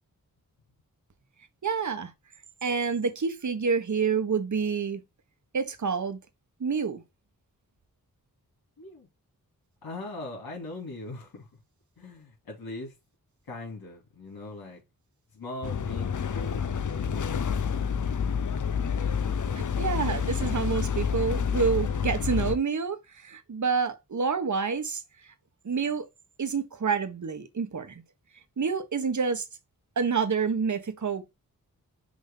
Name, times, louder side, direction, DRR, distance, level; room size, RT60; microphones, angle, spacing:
voice 1, 1.6-2.1 2.6-5.0 5.5-6.2 6.6-7.0 19.5-25.3 25.6-26.1 26.4-28.0 28.6-29.5 30.0-31.3, right 5 dB, 55° right, 1.4 m, -28 dB
voice 2, 8.8-9.1 9.8-11.5 12.0-13.0 13.5-14.8 15.3-16.6 16.9-17.6, left 2 dB, 85° left, 2.5 m, -40 dB
sound 1, 15.6-22.6, left 6 dB, 55° left, 0.8 m, -28 dB
6.3 x 3.0 x 5.4 m
cardioid pair, 50°, 36 cm